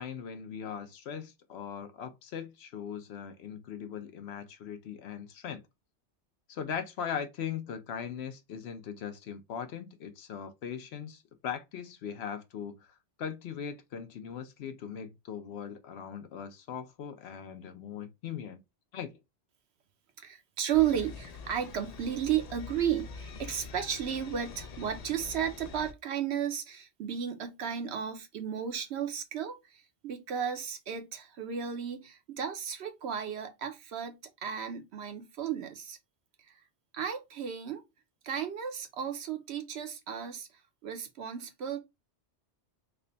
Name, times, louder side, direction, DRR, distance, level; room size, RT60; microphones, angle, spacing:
voice 1, 0.0-5.6 6.5-18.6 18.9-19.1, left 8 dB, 70° left, 0.8 m, -40 dB
voice 2, 20.2-36.0 36.5-36.6 36.9-37.8 38.2-40.5 40.8-41.8, right 9 dB, 70° right, 0.9 m, -34 dB
sound 1, 20.7-25.9, left 4 dB, 55° left, 0.4 m, -45 dB
3.3 x 2.2 x 3.8 m
omnidirectional pair, 1.2 m